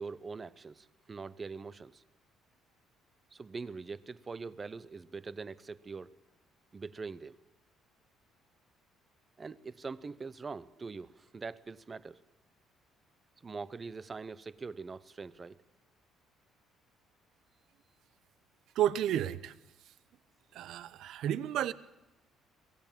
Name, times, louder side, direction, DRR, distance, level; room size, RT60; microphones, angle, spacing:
voice 1, 0.0-2.0 3.3-6.2 6.7-7.4 9.4-12.2 13.4-15.6, right 4 dB, 25° right, 0.7 m, -43 dB
voice 2, 18.7-19.5 20.5-21.7, right 11 dB, 70° right, 0.8 m, -31 dB
23.0 x 17.0 x 7.4 m
cardioid pair, 130°, 0 cm